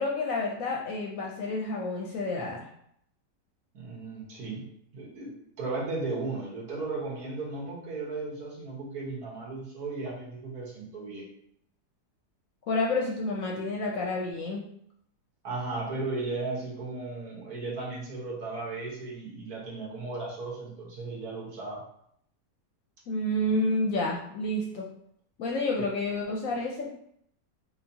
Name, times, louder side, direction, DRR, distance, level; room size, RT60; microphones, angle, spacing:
voice 1, 0.0-2.7 12.7-14.6 23.1-24.8 25.4-26.9, left 2 dB, 65° left, -1 dB, 0.9 m, -29 dB
voice 2, 3.7-4.6 4.9-5.3 5.6-11.2 15.4-21.8 26.5-26.6, right 3 dB, 65° right, -4 dB, 1.6 m, -35 dB
4.7 x 2.3 x 2.7 m, 0.71 s
omnidirectional pair, 1.7 m